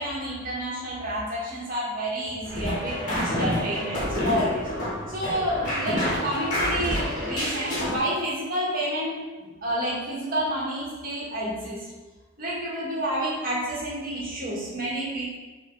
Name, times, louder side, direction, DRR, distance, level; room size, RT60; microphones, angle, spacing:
voice 1, 0.0-4.7 5.1-11.9 12.4-15.2, right 1 dB, 40° right, -6 dB, 2.1 m, -29 dB
sound 1, 2.4-8.0, left 1 dB, 40° left, 2.3 m, -28 dB
6.5 x 3.9 x 4.9 m, 1.3 s
head